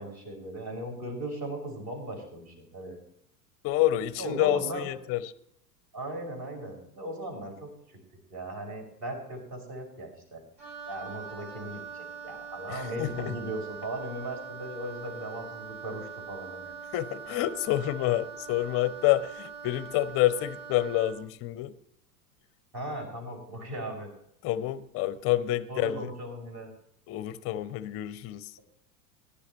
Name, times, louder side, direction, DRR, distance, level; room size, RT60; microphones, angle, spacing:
voice 1, 0.0-3.0 4.2-4.9 5.9-8.0 8.3-10.4 10.9-16.7 22.7-24.1 25.7-26.7, right 1 dB, 35° right, 2 dB, 5.9 m, -38 dB
voice 2, 3.6-5.2 12.7-13.3 16.9-21.7 24.4-26.1 27.1-28.5, left 14 dB, 30° left, 16 dB, 0.7 m, -28 dB
Wind instrument woodwind instrument, 10.6-21.2, right 6 dB, 80° right, 3.2 m, -43 dB
21.5 x 11.0 x 3.0 m, 0.73 s
figure-of-eight pair, 85°, 48 cm